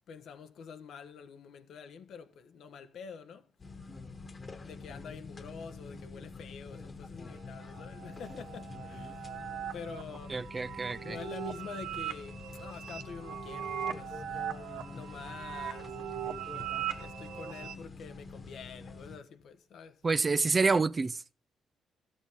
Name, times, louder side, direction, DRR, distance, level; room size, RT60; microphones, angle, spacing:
voice 1, 0.1-3.5 4.6-9.3 9.7-10.4 11.0-16.0 17.0-20.0, left 6 dB, 70° left, 1.2 m, -47 dB
sound 1, 3.6-19.2, left 3 dB, 30° left, 1.5 m, -46 dB
sound 2, 7.4-17.7, right 10 dB, 85° right, 1.0 m, -40 dB
voice 2, 10.3-11.2 20.0-21.2, right 4 dB, 30° right, 0.5 m, -28 dB
13.0 x 8.3 x 3.6 m
cardioid pair, 90°, 0 cm